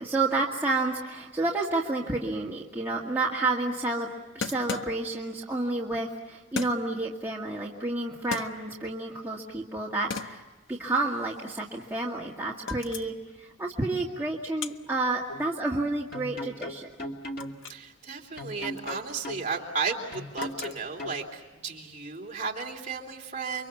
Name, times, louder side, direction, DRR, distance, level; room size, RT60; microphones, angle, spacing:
voice 1, 0.0-4.1 4.3-17.1, right 2 dB, 10° right, -4 dB, 1.9 m, -30 dB
sound 1, 2.8-2.9 3.1-3.2 4.4-5.4 6.6-7.1 8.0-9.0 9.4-9.8 10.1-12.3 12.6-13.3 13.7-17.9 18.2-21.4, left 5 dB, 70° left, 1.0 m, -39 dB
sound 2, 15.3-15.4 16.1-17.6 18.4-19.4 20.1-21.2, left 1 dB, 45° left, 2.6 m, -37 dB
voice 2, 17.7-23.7, right 4 dB, 35° right, 0 dB, 3.4 m, -34 dB
30.0 x 24.5 x 7.2 m, 1.2 s
head